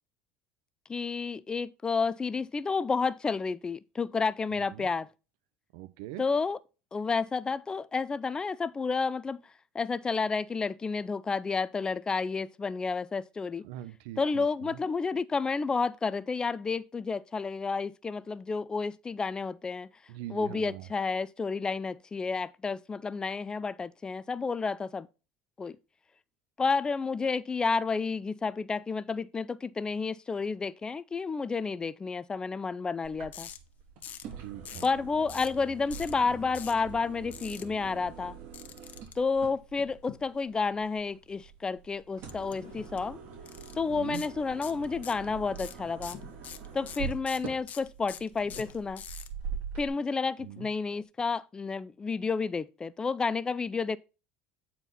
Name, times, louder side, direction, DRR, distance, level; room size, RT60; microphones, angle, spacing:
voice 1, 0.9-5.1 6.2-6.6 6.9-9.4 9.7-13.6 14.2-19.9 20.3-25.1 25.6-25.8 26.6-33.5 34.8-38.3 39.2-43.2 43.8-46.2 46.7-49.0 49.8-54.0, left 4 dB, 20° left, 0.4 m, -31 dB
voice 2, 4.5-4.9 5.7-6.2 13.6-14.8 20.1-20.9 34.4-34.9 43.9-44.2 50.4-50.7, right 14 dB, 75° right, 0.8 m, -42 dB
sound 1, 33.0-49.9, right 6 dB, 55° right, 3.4 m, -44 dB
sound 2, 33.3-33.6 34.0-34.3 34.6-34.9 35.3-35.6 35.9-36.1 36.5-36.8 37.3-37.6 38.5-39.1 42.3-42.5 42.8-43.0 43.4-43.7 44.1-44.3 44.6-45.2 45.5-49.3, left 9 dB, 45° left, 0.9 m, -44 dB
sound 3, 35.2-51.1, left 11 dB, 60° left, 1.2 m, -56 dB
8.9 x 4.4 x 4.0 m
supercardioid pair, 95°, 4 cm